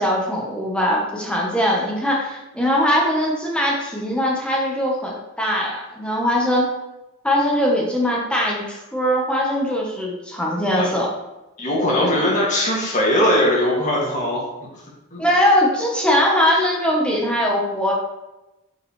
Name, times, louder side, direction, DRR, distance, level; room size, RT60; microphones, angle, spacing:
voice 1, 0.0-6.7 7.2-11.1 12.0-12.1 15.2-17.9, equal, 5° left, -3 dB, 1.2 m, -21 dB
voice 2, 11.6-14.5 15.1-15.2, left 1 dB, 35° left, -4 dB, 2.2 m, -20 dB
7.8 x 5.5 x 3.3 m, 0.98 s
head